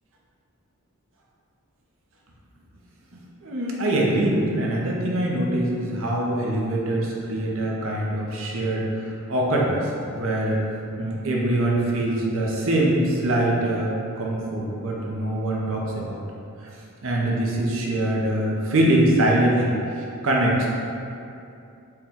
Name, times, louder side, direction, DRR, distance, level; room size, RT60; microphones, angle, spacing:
voice 1, 3.1-10.6 11.0-13.9 14.2-16.2 17.0-19.8 20.2-20.7, right 1 dB, 60° right, -3 dB, 0.6 m, -23 dB
4.3 x 2.2 x 3.6 m, 2.6 s
head